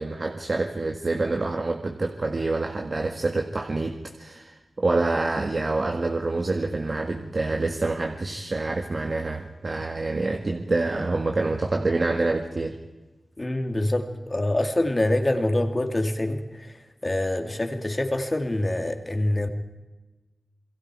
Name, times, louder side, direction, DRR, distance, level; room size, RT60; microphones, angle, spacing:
voice 1, 0.0-12.8, right 3 dB, 45° right, 1.7 m, -27 dB
voice 2, 13.4-19.5, left 1 dB, 25° left, 2.5 m, -25 dB
28.0 x 22.0 x 4.8 m
wide cardioid pair, 80°, 0 cm